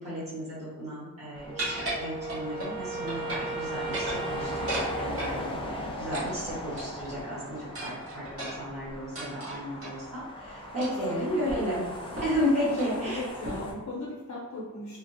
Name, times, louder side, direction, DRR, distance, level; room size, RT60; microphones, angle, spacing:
voice 1, 0.0-11.8 12.2-13.2, equal, 20° right, -11 dB, 1.1 m, -33 dB
sound 1, 1.3-13.7, left 1 dB, 15° left, 0.3 m, -39 dB
Wind instrument woodwind instrument, 1.5-5.9, right 4 dB, 60° right, 0.5 m, -38 dB
Cutlery - Plates, 1.6-2.7 3.1-3.6 3.8-5.4 6.1-7.1 7.7-9.9 10.8-11.1 11.5-11.6 12.2-12.4 12.7-12.9 13.4-13.8, right 1 dB, 45° right, 0.9 m, -36 dB
voice 2, 11.1-11.6 12.6-15.0, left 1 dB, 60° left, -6 dB, 0.6 m, -38 dB
3.3 x 2.0 x 2.6 m, 1.2 s
wide cardioid pair, 170°, 33 cm